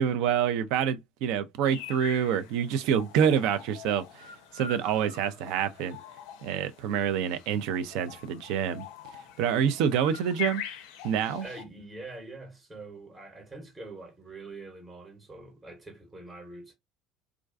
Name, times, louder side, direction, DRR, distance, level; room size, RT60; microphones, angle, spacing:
voice 1, 0.0-6.0 6.4-8.9 9.4-10.6 11.0-11.5, right 8 dB, 60° right, 0.4 m, -27 dB
sound 1, 1.6-11.6, left 9 dB, 65° left, 0.4 m, -43 dB
voice 2, 11.4-16.7, right 2 dB, 20° right, 0.9 m, -44 dB
2.4 x 2.2 x 2.4 m
figure-of-eight pair, 60°, 0 cm